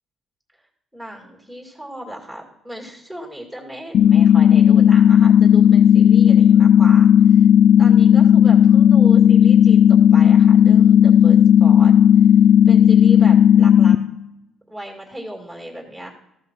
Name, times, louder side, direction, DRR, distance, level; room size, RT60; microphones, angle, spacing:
voice 1, 0.9-7.5 7.8-11.9 12.6-13.9 14.7-16.1, equal, ahead, -1 dB, 2.2 m, -35 dB
sound 1, 3.9-14.0, left 9 dB, 60° left, 0.4 m, -12 dB
14.5 x 5.7 x 4.5 m, 0.85 s
cardioid pair, 110°, 0 cm